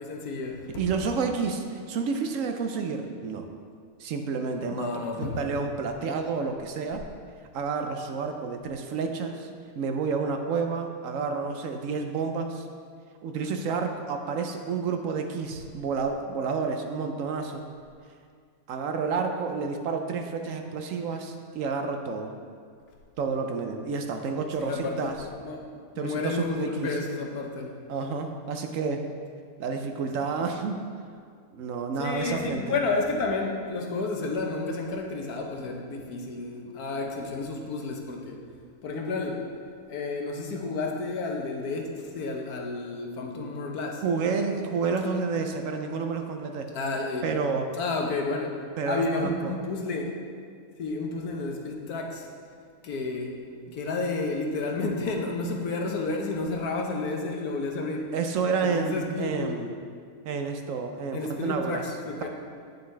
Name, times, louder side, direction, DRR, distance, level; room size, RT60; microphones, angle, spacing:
voice 1, 0.0-0.7 4.7-5.5 24.6-27.8 32.0-38.4 38.8-39.5 39.9-44.0 46.7-47.3 47.7-50.1 50.8-52.3 52.8-53.4 53.7-58.1 58.6-59.5 61.1-62.3, left 3 dB, 85° left, 1 dB, 1.4 m, -31 dB
voice 2, 0.8-3.5 4.0-4.9 5.2-7.0 7.5-9.5 9.8-12.7 13.2-17.6 18.7-22.3 23.2-25.2 26.0-27.0 27.9-29.1 29.6-30.8 31.5-32.8 44.0-46.7 47.2-47.7 48.8-49.5 58.1-59.7 60.2-61.9 62.2-62.3, right 5 dB, 70° right, 5 dB, 0.9 m, -30 dB
9.2 x 6.6 x 3.2 m, 2.1 s
omnidirectional pair, 1.6 m